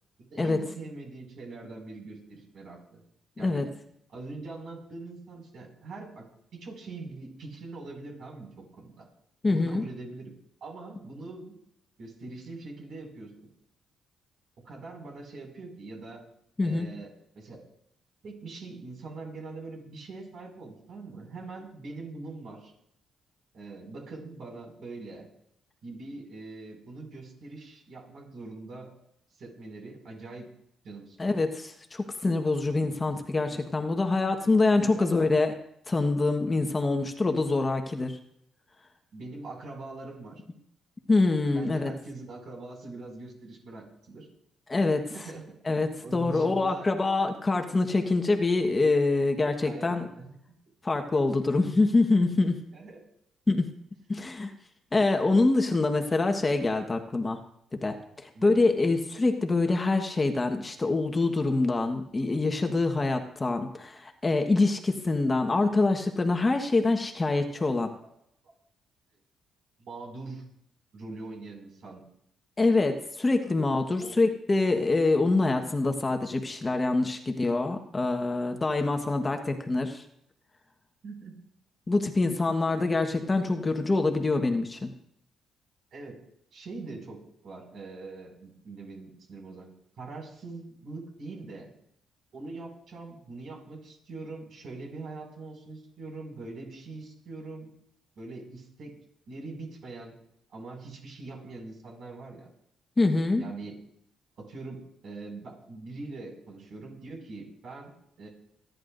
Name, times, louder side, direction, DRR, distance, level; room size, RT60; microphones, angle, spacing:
voice 1, 0.2-3.0 3.4-3.7 4.1-6.2 6.5-9.1 9.5-10.3 10.6-11.5 12.0-13.5 14.6-16.2 16.6-17.6 18.2-22.7 23.5-25.3 25.8-28.9 29.3-30.5 30.8-31.3 33.5-33.6 34.8-35.2 39.1-40.4 41.5-44.3 45.1-45.4 45.7-46.9 49.6-50.3 52.7-53.1 58.3-58.6 68.0-68.1 69.8-70.4 70.9-72.0 74.0-74.1 81.0-81.3 85.9-86.2 86.5-89.7 90.0-91.7 92.3-97.7 98.2-98.9 99.3-100.2 100.5-102.5 103.4-103.8 104.4-107.9 108.2-108.3, right 3 dB, 60° right, 0 dB, 6.1 m, -42 dB
voice 2, 9.4-9.8 16.6-16.9 31.2-35.5 35.9-38.1 41.1-41.9 44.7-45.0 45.6-50.1 50.8-52.5 53.5-53.7 54.1-54.5 54.9-57.4 57.7-57.9 58.2-67.9 72.6-80.0 81.9-84.9 103.0-103.4, left 3 dB, 25° left, 5 dB, 1.4 m, -25 dB
29.0 x 10.5 x 2.7 m, 0.73 s
cardioid pair, 90°, 0 cm